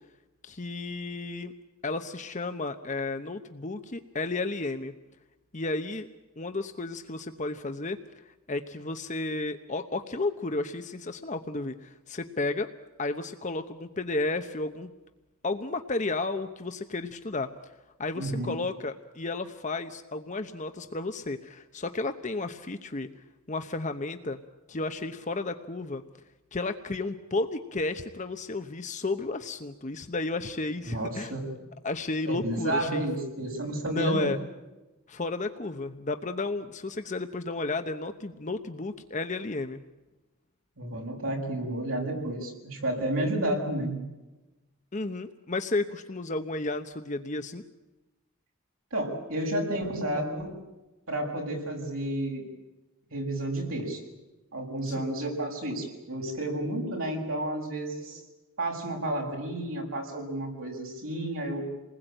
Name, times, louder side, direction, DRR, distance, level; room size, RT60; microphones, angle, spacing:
voice 1, 0.4-1.5 1.8-4.9 5.5-6.1 6.4-8.0 8.5-12.7 13.0-14.9 15.4-17.5 18.0-23.1 23.5-24.4 24.7-26.0 26.5-31.4 31.8-33.1 33.9-34.4 35.1-39.8 44.9-47.6 54.9-55.1, left 2 dB, 35° left, 7 dB, 0.9 m, -32 dB
voice 2, 18.1-18.6 30.9-31.4 32.2-34.3 40.8-44.0 48.9-50.5 51.1-52.5 53.1-54.0 54.5-58.2 58.6-61.6, right 1 dB, 80° right, 0 dB, 7.2 m, -31 dB
28.5 x 20.5 x 9.1 m, 1.1 s
head